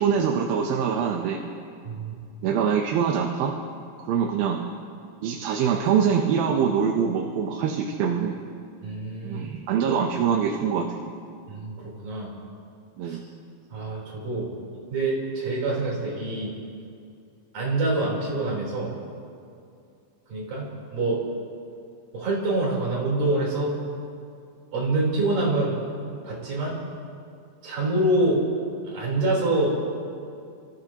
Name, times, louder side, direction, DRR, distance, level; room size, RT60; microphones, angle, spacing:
voice 1, 0.0-1.4 2.4-3.5 4.1-4.6 5.2-8.4 9.2-11.1 13.0-13.2, right 7 dB, 85° right, 1 dB, 2.8 m, -24 dB
voice 2, 1.8-2.2 8.8-9.5 11.5-12.3 13.0-13.2 13.7-14.5 14.9-16.5 17.5-18.9 20.3-21.2 22.1-23.8 24.7-25.8 26.2-26.8 27.6-28.4 28.8-29.8, right 2 dB, 65° right, -5 dB, 5.6 m, -26 dB
30.0 x 15.0 x 3.0 m, 2.4 s
omnidirectional pair, 4.1 m